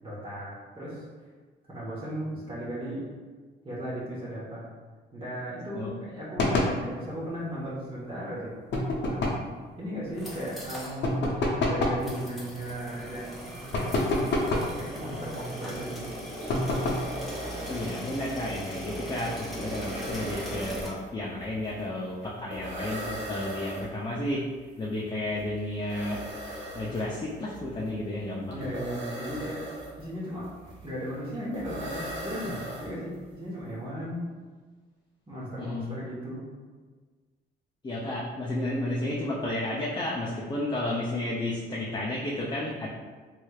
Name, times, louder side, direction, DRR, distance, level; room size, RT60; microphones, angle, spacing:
voice 1, 0.0-1.0 1.7-3.0 3.6-4.7 5.1-8.5 9.0-9.3 9.8-13.5 13.9-14.3 14.8-16.1 28.5-29.7 30.0-30.5 30.8-34.3 35.3-36.4, equal, 25° right, -8 dB, 1.1 m, -36 dB
sound 1, 6.4-6.8 8.7-9.5 11.0-12.1 13.7-14.8 16.5-17.1, left 2 dB, 65° left, 0.7 m, -27 dB
sound 2, 10.0-11.0 11.3-11.4 12.0-20.9, equal, ahead, 0.9 m, -39 dB
sound 3, 16.2-33.3, equal, 70° right, 1.0 m, -40 dB
voice 2, 17.7-24.5 24.8-26.2 26.7-28.7 35.6-36.0 37.8-42.9, left 1 dB, 20° left, -5 dB, 0.5 m, -32 dB
3.2 x 3.1 x 2.3 m, 1.4 s
cardioid pair, 90°, 20 cm